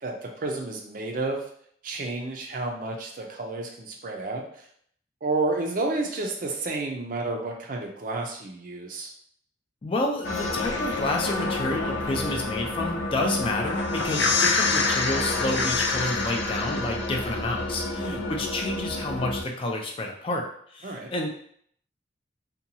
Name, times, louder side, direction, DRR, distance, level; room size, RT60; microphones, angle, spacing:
voice 1, 0.0-1.5 1.8-4.6 5.2-9.1 18.0-18.4 20.8-21.1, right 2 dB, 50° right, 2 dB, 0.5 m, -31 dB
voice 2, 9.8-20.5 20.7-21.3, left 2 dB, 30° left, 1 dB, 0.4 m, -29 dB
sound 1, 10.2-19.4, left 3 dB, 85° left, 0.5 m, -27 dB
2.8 x 2.2 x 2.7 m, 0.63 s
head